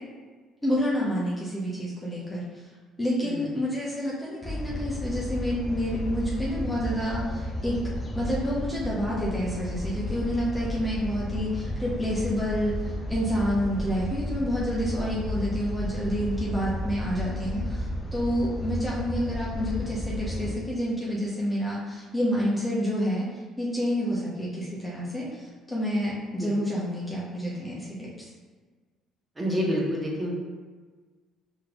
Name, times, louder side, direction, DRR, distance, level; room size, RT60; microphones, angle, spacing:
voice 1, 0.6-2.4 3.0-7.8 8.1-12.7 13.1-23.3 23.6-28.3, equal, 10° left, -7 dB, 1.1 m, -29 dB
sound 1, 4.4-20.6, left 1 dB, 30° left, 0.8 m, -33 dB
voice 2, 29.4-30.3, equal, 20° right, -4 dB, 1.3 m, -28 dB
5.7 x 3.1 x 2.5 m, 1.4 s
supercardioid pair, 80°, 0 cm